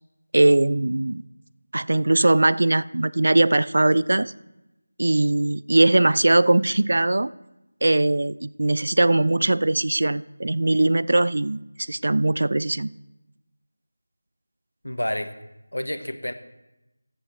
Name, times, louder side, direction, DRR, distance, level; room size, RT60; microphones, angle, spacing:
voice 1, 0.3-1.2 1.7-4.3 5.0-7.3 7.8-12.9, right 2 dB, 60° right, 19 dB, 0.4 m, -20 dB
voice 2, 14.8-15.3 15.7-16.3, left 1 dB, 85° left, 10 dB, 1.1 m, -29 dB
15.0 x 7.9 x 4.3 m, 0.96 s
figure-of-eight pair, 165°, 0 cm